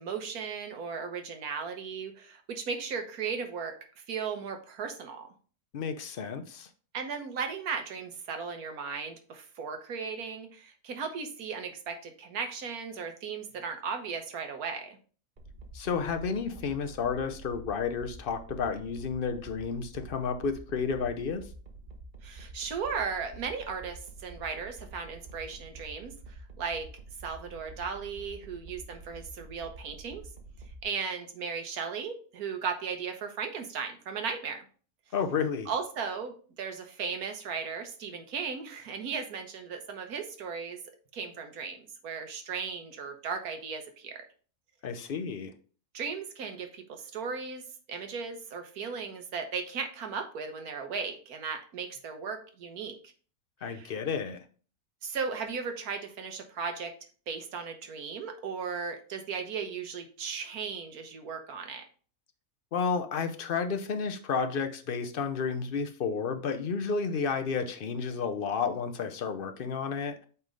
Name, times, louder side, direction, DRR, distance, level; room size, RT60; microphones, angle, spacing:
voice 1, 0.0-3.7 4.1-5.3 6.9-15.0 22.2-26.9 27.2-30.2 30.8-34.6 35.7-40.8 41.1-44.2 45.9-47.6 47.9-52.9 53.7-53.9 55.0-56.9 57.3-61.8, right 5 dB, 75° right, 6 dB, 1.5 m, -36 dB
voice 2, 5.7-6.7 15.7-21.5 35.1-35.7 44.8-45.5 53.6-54.4 62.7-70.1, left 5 dB, 50° left, 8 dB, 0.7 m, -31 dB
sound 1, 15.4-30.8, right 2 dB, 35° right, 1.1 m, -48 dB
8.1 x 3.6 x 3.8 m, 0.41 s
omnidirectional pair, 1.6 m